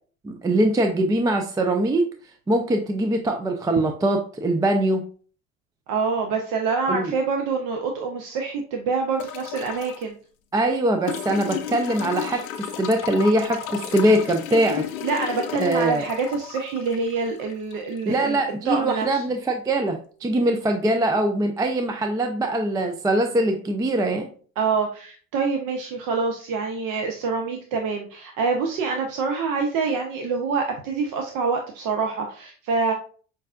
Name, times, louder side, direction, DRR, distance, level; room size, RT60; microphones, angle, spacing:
voice 1, 0.2-2.1 2.5-5.0 6.9-7.1 10.5-14.9 15.6-16.1 18.1-24.3, right 1 dB, 10° right, 5 dB, 0.3 m, -22 dB
voice 2, 5.9-10.2 15.0-18.4 18.7-19.2 24.6-32.9, right 4 dB, 55° right, 3 dB, 0.7 m, -26 dB
sound 1, 9.2-10.0 11.1-18.1 19.4-19.5, left 10 dB, 85° left, 0.6 m, -33 dB
5.2 x 2.5 x 2.4 m, 0.42 s
hypercardioid pair, 70°, 40 cm